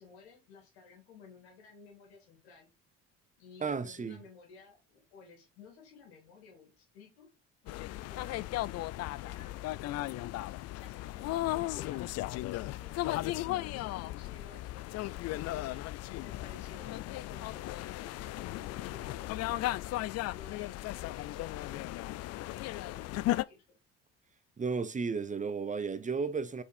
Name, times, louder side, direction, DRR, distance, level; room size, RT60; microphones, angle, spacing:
voice 1, 0.0-2.7 3.4-7.3 7.6-8.5 9.2-9.6 10.7-15.8 16.2-19.8 20.3-22.1 22.5-23.8, left 5 dB, 85° left, 2.9 m, -55 dB
voice 2, 3.6-4.2 24.6-26.6, right 5 dB, 25° right, 0.7 m, -33 dB
sound 1, 7.7-23.4, left 16 dB, 55° left, 0.4 m, -36 dB
5.3 x 4.7 x 4.4 m
hypercardioid pair, 65°, 31 cm